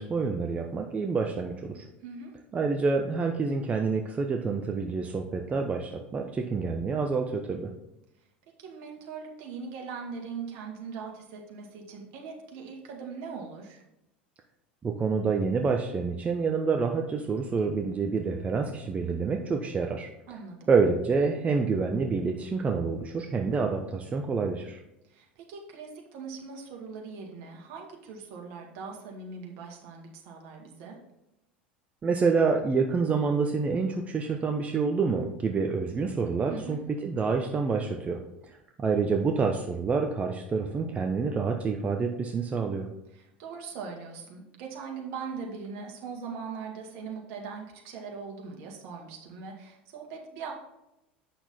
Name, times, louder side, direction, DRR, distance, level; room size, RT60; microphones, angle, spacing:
voice 1, 0.0-1.9 2.5-7.7 14.8-20.1 20.7-24.8 32.0-38.2 38.8-42.9, right 4 dB, 25° right, 3 dB, 0.7 m, -27 dB
voice 2, 2.0-2.4 8.6-13.8 20.3-20.7 25.1-31.0 36.5-36.8 43.1-50.5, right 5 dB, 55° right, 1 dB, 2.0 m, -41 dB
8.4 x 6.0 x 4.1 m, 0.88 s
figure-of-eight pair, 80°, 6 cm